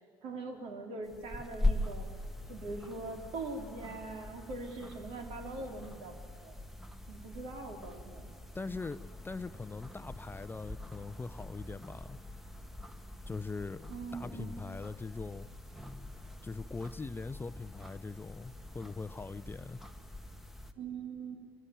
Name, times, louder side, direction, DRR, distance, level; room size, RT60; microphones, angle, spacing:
voice 1, 0.2-2.1 2.5-6.5 7.1-8.3 13.9-14.7 20.8-21.4, right 3 dB, 65° right, 2 dB, 3.4 m, -42 dB
sound 1, 1.1-20.7, left 2 dB, ahead, 1.4 m, -42 dB
voice 2, 8.5-12.2 13.3-15.5 16.4-19.8, left 4 dB, 15° left, 13 dB, 0.6 m, -41 dB
24.5 x 15.0 x 9.3 m, 2.4 s
hypercardioid pair, 70°, 12 cm